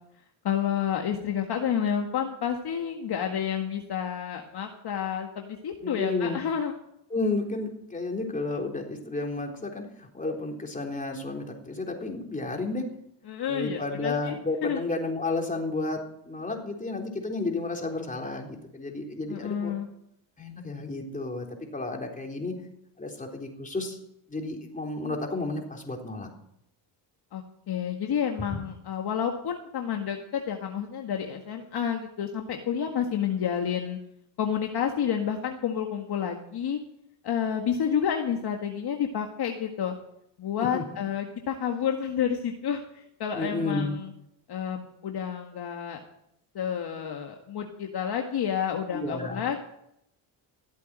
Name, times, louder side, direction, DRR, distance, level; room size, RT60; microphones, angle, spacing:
voice 1, 0.4-6.7 13.3-14.4 14.6-14.8 19.3-19.9 27.3-34.0 34.4-36.8 37.2-39.9 40.4-42.8 43.2-44.1 44.5-46.0 46.6-49.6, left 8 dB, 50° left, 3 dB, 1.8 m, -30 dB
voice 2, 5.8-6.4 7.1-12.8 13.5-19.7 20.4-21.5 21.7-22.5 23.0-24.0 24.3-26.3 28.5-28.6 40.6-40.8 43.3-44.0 48.9-49.4, left 3 dB, 15° left, 1 dB, 3.8 m, -32 dB
15.0 x 8.4 x 9.0 m, 0.76 s
cardioid pair, 100°, 48 cm